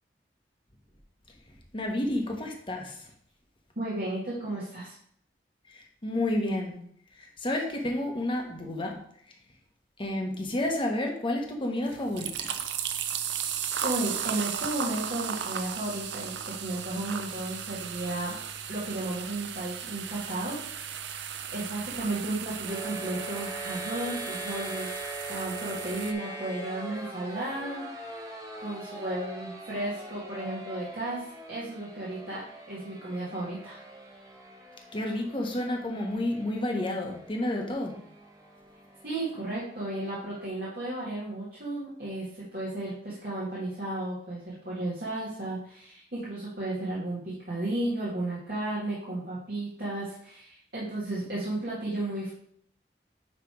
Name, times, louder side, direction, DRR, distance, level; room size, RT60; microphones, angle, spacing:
voice 1, 1.7-3.1 5.7-6.8 7.2-9.0 10.0-12.3 34.9-37.9, left 1 dB, 30° left, 1 dB, 1.2 m, -30 dB
voice 2, 3.8-5.0 13.8-18.4 18.7-21.1 21.5-24.9 25.3-28.1 28.6-32.4 32.7-33.8 39.0-52.3, right 1 dB, 60° right, -9 dB, 2.0 m, -34 dB
sound 1, 11.9-26.1, right 8 dB, 90° right, 0.6 m, -36 dB
sound 2, 22.6-40.4, right 1 dB, 20° right, 1.3 m, -43 dB
9.5 x 3.4 x 4.7 m, 0.66 s
head